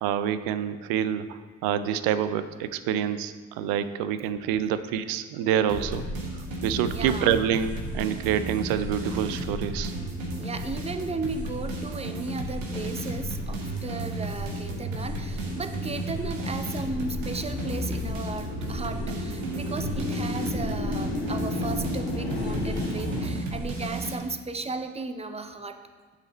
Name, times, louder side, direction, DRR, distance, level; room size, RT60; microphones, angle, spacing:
voice 1, 0.0-6.0 6.6-9.9, right 9 dB, 65° right, 13 dB, 0.5 m, -27 dB
sound 1, 5.7-23.3, left 1 dB, 75° left, 1.9 m, -35 dB
sound 2, 5.7-24.2, right 2 dB, 85° right, 1.1 m, -34 dB
voice 2, 6.9-7.5 10.3-25.8, right 3 dB, 15° right, 9 dB, 0.6 m, -35 dB
8.8 x 4.1 x 4.2 m, 1.5 s
hypercardioid pair, 50°, 38 cm